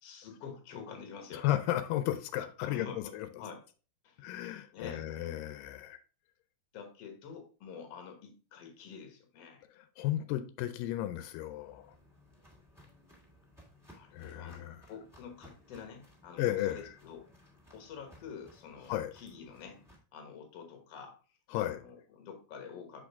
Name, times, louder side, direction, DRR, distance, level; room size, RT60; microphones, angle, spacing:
voice 1, 0.0-1.5 2.6-3.6 4.0-4.3 4.7-5.1 6.7-9.6 13.9-14.6 14.9-17.3 17.7-19.8 20.1-21.2 21.5-23.0, left 6 dB, 55° left, 5 dB, 2.0 m, -47 dB
voice 2, 1.3-3.3 4.2-6.0 9.8-11.9 14.1-14.8 16.4-16.9 18.9-19.1 21.5-21.8, left 13 dB, 85° left, 10 dB, 2.3 m, -34 dB
Walk footsteps, 11.5-20.0, equal, ahead, 1.5 m, -60 dB
6.3 x 5.2 x 3.5 m, 0.37 s
omnidirectional pair, 3.9 m